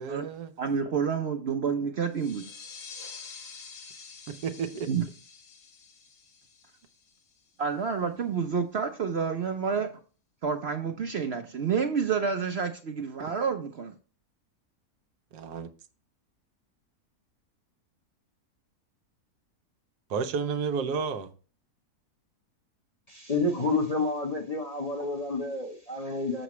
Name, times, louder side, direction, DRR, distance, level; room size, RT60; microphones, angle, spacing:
voice 1, 0.0-0.5 4.3-4.9 15.3-15.7 20.1-21.3, right 6 dB, 85° right, 1.3 m, -31 dB
voice 2, 0.6-2.5 4.9-5.0 7.6-9.9 10.4-13.9, right 6 dB, 55° right, 0.8 m, -29 dB
sound 1, 2.1-7.5, left 5 dB, 75° left, 1.7 m, -47 dB
voice 3, 23.1-26.4, left 2 dB, 30° left, 0.9 m, -29 dB
7.0 x 6.6 x 3.1 m
omnidirectional pair, 1.7 m